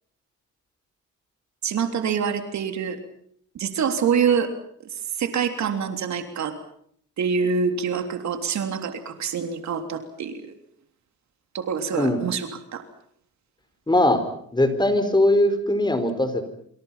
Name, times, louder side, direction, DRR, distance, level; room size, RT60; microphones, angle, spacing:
voice 1, 1.6-3.0 3.5-4.5 4.9-6.5 7.2-10.6 11.5-12.8, right 6 dB, 65° right, 7 dB, 3.3 m, -26 dB
voice 2, 13.9-14.2 14.5-16.4, left 1 dB, 15° left, 10 dB, 4.6 m, -20 dB
27.5 x 26.5 x 5.8 m, 0.65 s
cardioid pair, 90°, 30 cm